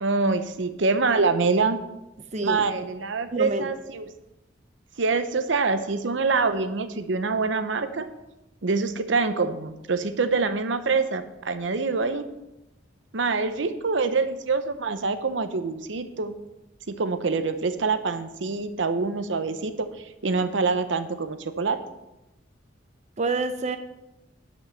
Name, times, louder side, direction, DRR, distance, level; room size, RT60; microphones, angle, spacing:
voice 1, 0.0-1.8 2.4-4.1 5.0-8.1 8.6-12.2 13.1-16.3 16.9-21.8, right 4 dB, 75° right, 10 dB, 0.7 m, -25 dB
voice 2, 2.3-2.9 3.3-3.7 23.2-23.8, right 3 dB, 40° right, 8 dB, 0.6 m, -28 dB
10.5 x 5.2 x 6.8 m, 0.95 s
head